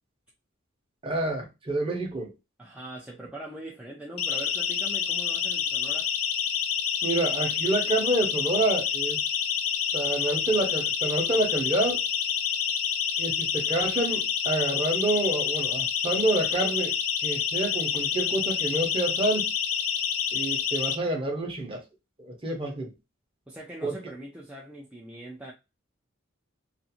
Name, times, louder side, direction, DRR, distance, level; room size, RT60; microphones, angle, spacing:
voice 1, 1.0-2.3 7.0-9.2 9.9-12.0 13.2-16.9 17.2-19.5 20.3-21.8 22.2-22.9 23.8-24.0, right 2 dB, 25° right, 0.7 m, -28 dB
voice 2, 2.6-6.1 23.5-25.5, right 1 dB, 5° right, 0.4 m, -42 dB
Siren, 4.2-20.9, left 7 dB, 85° left, 0.4 m, -28 dB
2.5 x 2.5 x 2.8 m
head